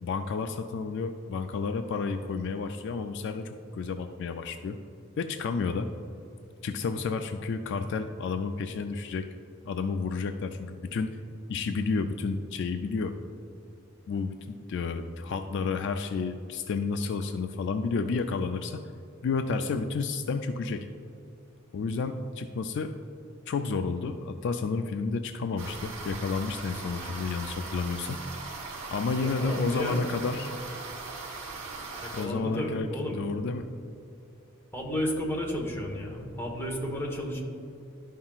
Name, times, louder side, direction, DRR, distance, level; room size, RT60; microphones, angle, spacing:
voice 1, 0.0-4.8 5.2-5.9 6.6-9.3 9.6-11.2 11.5-13.2 14.1-18.8 19.2-20.9 21.7-23.0 23.5-28.2 28.9-30.5 32.1-33.7, left 4 dB, 60° left, 7 dB, 0.3 m, -31 dB
sound 1, 25.6-32.3, right 3 dB, 65° right, 1.3 m, -39 dB
voice 2, 29.2-30.0 32.0-33.2 34.7-37.4, equal, 10° left, -2 dB, 1.1 m, -32 dB
12.0 x 5.6 x 2.4 m, 2.6 s
head